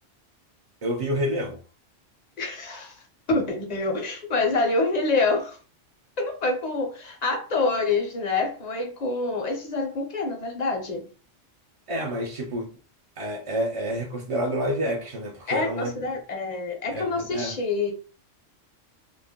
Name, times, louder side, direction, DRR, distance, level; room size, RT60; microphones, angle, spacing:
voice 1, 0.8-1.6 11.9-12.7 13.2-15.9 16.9-17.5, equal, 50° right, 0.4 m, -28 dB
voice 2, 2.4-3.0 3.3-5.6 6.2-11.1 15.5-17.9, left 3 dB, 50° left, 0.5 m, -26 dB
2.5 x 2.0 x 3.5 m
omnidirectional pair, 1.3 m